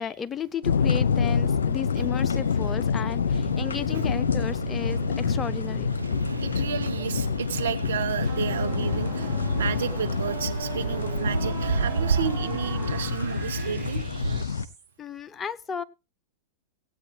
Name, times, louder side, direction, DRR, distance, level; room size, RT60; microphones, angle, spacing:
voice 1, 0.0-5.9 15.0-15.8, left 7 dB, 25° left, 13 dB, 0.7 m, -34 dB
sound 1, 0.6-14.7, left 6 dB, 80° left, 0.8 m, -27 dB
sound 2, 3.3-14.4, right 5 dB, 90° right, 0.5 m, -33 dB
voice 2, 6.4-14.0, right 8 dB, 75° right, 9 dB, 1.2 m, -32 dB
sound 3, 8.2-14.9, right 6 dB, 20° right, 7.0 m, -41 dB
17.5 x 8.8 x 2.9 m, 0.27 s
hypercardioid pair, 95°, 0 cm